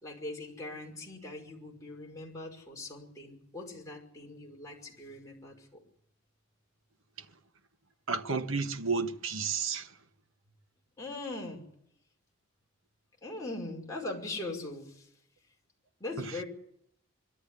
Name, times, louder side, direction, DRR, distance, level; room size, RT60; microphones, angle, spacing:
voice 1, 0.0-5.7 11.0-11.7 13.2-15.1 16.0-16.4, left 2 dB, 15° left, 5.5 m, -41 dB
voice 2, 8.1-9.9, right 4 dB, 70° right, 1.2 m, -31 dB
24.0 x 13.0 x 9.9 m
head